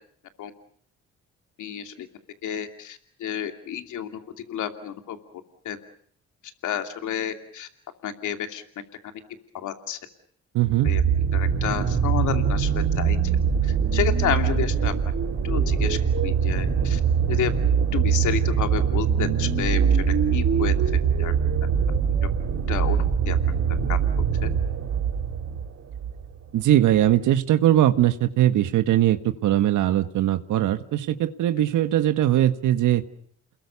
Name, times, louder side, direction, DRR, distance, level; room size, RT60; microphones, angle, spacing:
voice 1, 1.6-2.1 2.4-4.1 4.5-5.2 5.6-5.8 6.6-7.7 8.0-8.6 9.5-10.0 10.8-11.0 11.3-13.2 13.6-14.9 15.4-17.0 17.3-17.5 17.9-19.8 20.3-20.7 21.2-21.3 22.7-23.0 23.3-23.4 23.9-24.0, left 9 dB, 75° left, 6 dB, 2.8 m, -30 dB
voice 2, 10.5-10.9 26.5-33.0, right 12 dB, 80° right, 9 dB, 1.6 m, -20 dB
sound 1, 10.6-26.2 27.0-27.1, right 7 dB, 55° right, 4.8 m, -23 dB
29.5 x 21.5 x 7.0 m, 0.62 s
cardioid pair, 90°, 30 cm